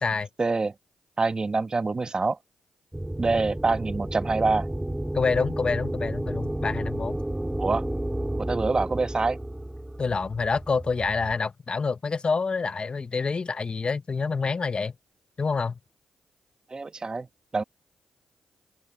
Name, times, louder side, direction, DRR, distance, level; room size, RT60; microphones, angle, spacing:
voice 1, 0.4-0.7 1.2-2.4 3.2-4.7 7.6-7.9 8.5-9.4 16.7-17.3 17.5-17.6, right 3 dB, 35° right, 1.6 m, -25 dB
sound 1, 2.9-11.4, right 1 dB, 10° right, 4.9 m, -32 dB
voice 2, 5.1-7.2 10.0-14.9 15.4-15.8, left 4 dB, 45° left, 1.2 m, -27 dB
open air
supercardioid pair, 50°, 2 cm